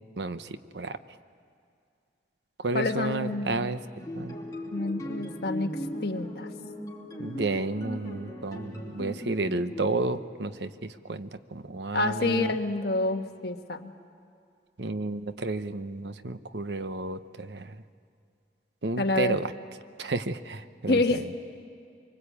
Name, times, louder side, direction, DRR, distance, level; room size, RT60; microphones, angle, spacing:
voice 1, 0.2-1.0 2.6-3.8 4.1-4.4 7.2-12.6 14.8-17.8 18.8-19.5 20.0-21.2, right 2 dB, 80° right, 11 dB, 0.9 m, -32 dB
voice 2, 2.7-3.7 4.7-5.7 6.0-6.5 11.9-13.9 19.0-19.4 20.9-21.2, left 2 dB, 65° left, 5 dB, 1.4 m, -27 dB
sound 1, 4.0-9.9, equal, 20° left, 3.0 m, -38 dB
25.0 x 24.0 x 8.5 m, 2.3 s
head